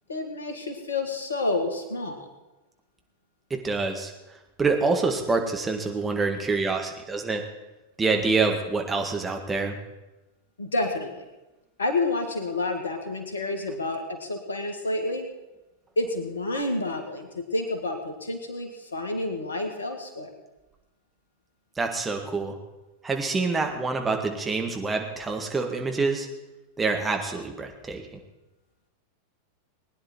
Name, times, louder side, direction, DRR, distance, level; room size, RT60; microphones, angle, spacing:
voice 1, 0.1-2.3 10.6-11.2 11.8-15.3 16.0-20.3, left 2 dB, 70° left, 6 dB, 2.0 m, -29 dB
voice 2, 3.5-4.1 4.6-7.4 8.0-9.8 21.8-22.6 23.0-26.3 26.8-28.0, right 4 dB, 15° right, 3 dB, 2.0 m, -26 dB
20.0 x 10.0 x 4.5 m, 1.0 s
figure-of-eight pair, 90°, 0 cm